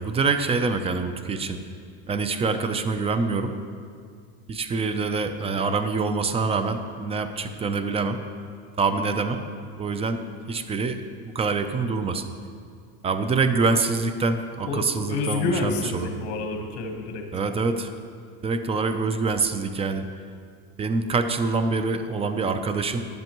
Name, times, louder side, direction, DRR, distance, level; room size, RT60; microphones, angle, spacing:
voice 1, 0.0-1.6 2.1-3.5 4.5-8.2 8.8-9.4 9.8-10.2 10.5-12.3 13.0-16.1 17.3-17.9 18.4-20.1 20.8-23.1, right 4 dB, 20° right, 8 dB, 0.6 m, -25 dB
voice 2, 14.7-17.2, left 4 dB, 60° left, 3 dB, 1.3 m, -28 dB
13.5 x 10.5 x 3.0 m, 2.2 s
supercardioid pair, 120°, 32 cm